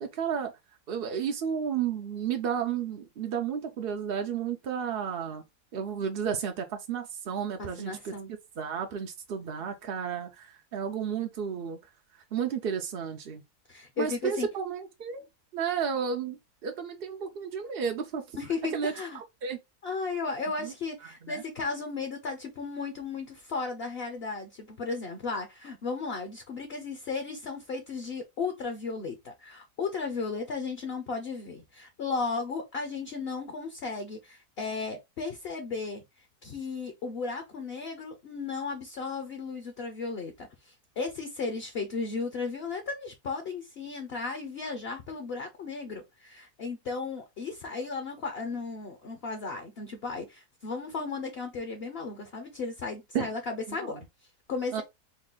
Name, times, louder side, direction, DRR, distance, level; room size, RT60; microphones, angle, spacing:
voice 1, 0.0-0.5 0.9-5.4 5.7-8.1 8.6-11.8 12.3-13.4 14.0-15.2 15.5-18.2 18.7-19.6 20.6-20.7 21.2-21.4 53.1-53.3 53.8-54.0 54.7-54.8, right 7 dB, 65° right, 0.5 m, -32 dB
voice 2, 7.6-8.3 13.7-14.5 18.4-19.2 19.8-36.0 36.4-54.0 54.5-54.8, left 4 dB, 50° left, 0.8 m, -35 dB
4.1 x 2.4 x 3.7 m
omnidirectional pair, 1.7 m